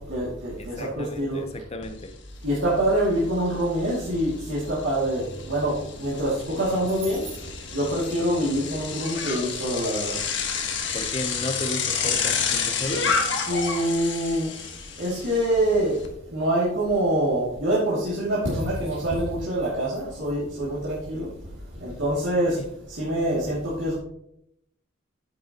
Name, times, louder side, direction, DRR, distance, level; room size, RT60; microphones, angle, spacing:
voice 1, 0.0-1.4 2.4-10.1 13.5-14.5 15.0-16.0 16.3-21.3 21.8-22.6 22.9-24.0, right 1 dB, 70° right, 2.5 m, -25 dB
voice 2, 0.6-2.2 10.9-13.2 22.4-22.7, left 1 dB, 30° left, 0.9 m, -34 dB
Bicycle, 1.8-1.9 2.3-16.1, left 6 dB, 65° left, 1.5 m, -30 dB
9.2 x 8.4 x 3.0 m
head